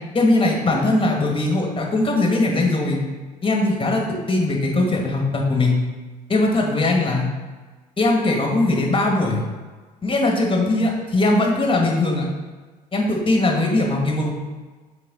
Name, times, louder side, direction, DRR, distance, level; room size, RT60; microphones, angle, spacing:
voice 1, 0.1-3.0 3.4-5.8 6.3-7.3 8.0-9.4 10.0-12.3 12.9-14.3, left 2 dB, 25° left, 0 dB, 1.9 m, -20 dB
7.9 x 4.1 x 4.1 m, 1.4 s
figure-of-eight pair, 55°, 21 cm